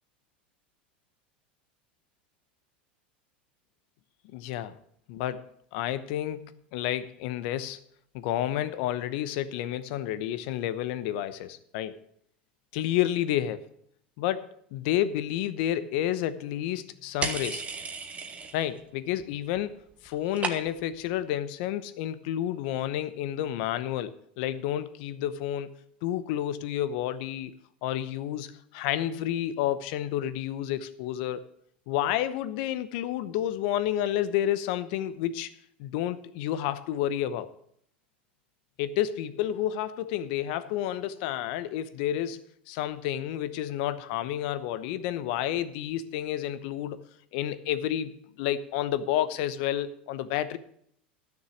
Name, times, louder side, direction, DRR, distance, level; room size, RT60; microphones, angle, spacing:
voice 1, 4.3-4.8 5.1-5.4 5.7-7.8 8.1-12.0 12.7-13.6 14.2-17.6 18.5-19.8 20.0-25.7 26.0-27.5 27.8-31.4 31.9-35.5 35.8-37.5 38.8-47.0 47.3-50.6, left 12 dB, 65° left, 14 dB, 0.9 m, -30 dB
sound 1, 17.2-18.8 19.1-19.6 19.9-21.0, right 5 dB, 25° right, 1.4 m, -35 dB
11.5 x 6.5 x 7.1 m, 0.69 s
hypercardioid pair, 100°, 6 cm